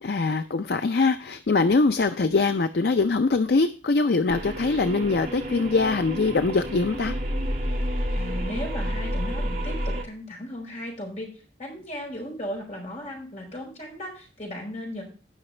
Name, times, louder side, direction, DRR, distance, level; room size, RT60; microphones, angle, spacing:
voice 1, 0.0-7.1, left 3 dB, 60° left, 9 dB, 0.5 m, -23 dB
sound 1, 4.3-10.0, equal, 50° right, 1.6 m, -30 dB
voice 2, 8.1-11.3 11.6-15.0, equal, 40° left, -1 dB, 4.9 m, -36 dB
17.5 x 6.0 x 3.2 m, 0.37 s
head